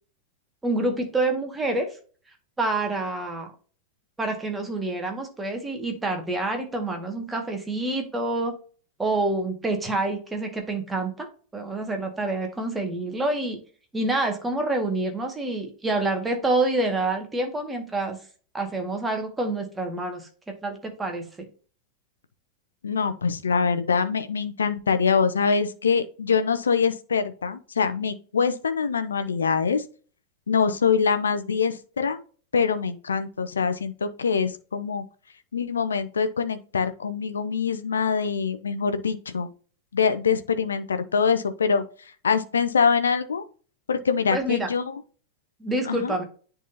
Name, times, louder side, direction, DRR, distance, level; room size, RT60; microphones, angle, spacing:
voice 1, 0.6-2.0 2.6-3.5 4.2-8.5 9.0-11.3 11.5-13.6 13.9-18.2 18.5-20.3 20.6-21.3 44.3-44.7 45.6-46.2, right 2 dB, 10° right, 3 dB, 1.8 m, -27 dB
voice 2, 22.8-29.8 30.5-32.2 32.5-35.0 35.5-39.5 39.9-41.8 42.2-43.4 43.9-45.0 45.9-46.1, left 6 dB, 70° left, 11 dB, 0.7 m, -24 dB
10.0 x 4.0 x 2.8 m, 0.39 s
figure-of-eight pair, 90°, 0 cm